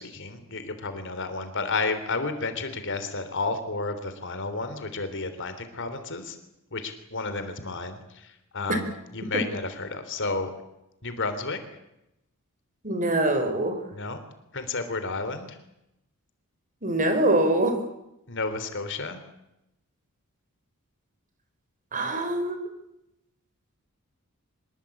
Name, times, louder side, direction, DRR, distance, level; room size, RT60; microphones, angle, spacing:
voice 1, 0.0-6.4 6.7-10.5 11.0-11.6 13.9-14.2 14.5-15.6 18.3-19.2, left 3 dB, 55° left, 10 dB, 3.3 m, -31 dB
voice 2, 12.8-13.8 16.8-17.8 21.9-22.7, right 1 dB, 35° right, 7 dB, 4.6 m, -24 dB
25.5 x 21.0 x 8.5 m, 0.86 s
head